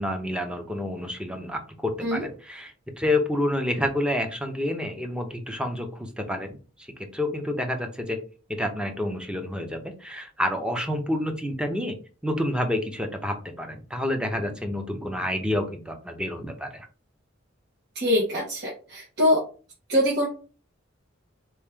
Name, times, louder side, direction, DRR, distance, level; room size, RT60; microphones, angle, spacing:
voice 1, 0.0-6.6 7.1-8.2 8.5-11.9 12.2-16.9, left 1 dB, 5° right, 5 dB, 0.7 m, -29 dB
voice 2, 17.9-19.4 19.9-20.3, left 1 dB, 55° right, -5 dB, 1.4 m, -23 dB
4.3 x 3.1 x 3.6 m, 0.36 s
head